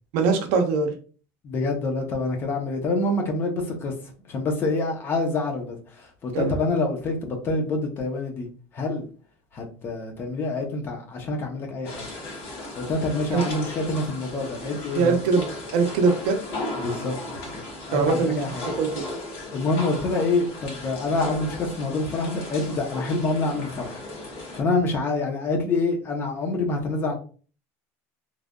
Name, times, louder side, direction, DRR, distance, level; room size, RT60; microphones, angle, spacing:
voice 1, 0.1-0.9 6.3-6.5 13.3-13.4 14.9-15.4 15.7-16.4 17.9-19.0, right 4 dB, 75° right, 5 dB, 0.7 m, -22 dB
voice 2, 1.4-3.9 4.3-8.5 8.7-9.1 9.5-12.1 12.7-15.2 16.8-17.1 17.5-18.7 19.5-24.0 24.5-27.1, left 3 dB, 35° left, 3 dB, 0.8 m, -26 dB
sound 1, 11.8-24.6, left 2 dB, 60° left, 1.2 m, -36 dB
3.2 x 2.5 x 2.3 m, 0.39 s
cardioid pair, 145°, 7 cm